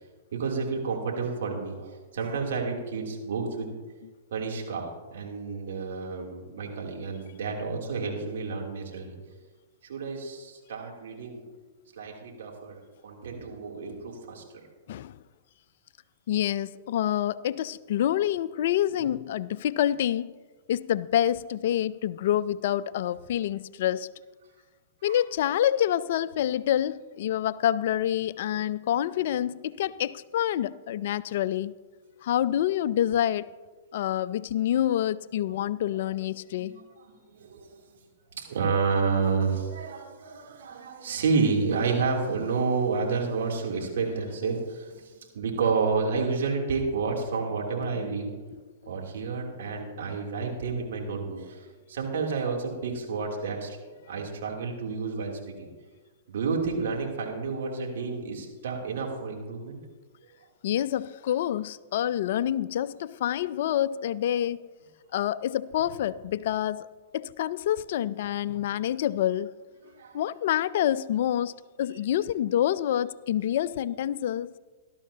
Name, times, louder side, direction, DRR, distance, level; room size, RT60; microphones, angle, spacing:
voice 1, 0.3-3.7 4.3-9.2 9.8-11.4 12.0-12.7 13.0-14.4 25.1-25.2 35.5-35.6 35.9-36.0 36.5-36.8 37.3-37.7 38.3-48.3 48.9-53.8 54.1-55.7 56.3-59.8 69.8-70.2, right 4 dB, 70° right, 3.0 m, -30 dB
voice 2, 16.3-20.3 20.7-24.1 25.0-31.7 32.2-33.5 33.9-36.7 48.0-48.1 60.6-64.7 65.1-66.9 67.1-69.5 70.1-74.6, left 11 dB, 60° left, 0.4 m, -27 dB
18.5 x 12.5 x 2.8 m
hypercardioid pair, 115°, 0 cm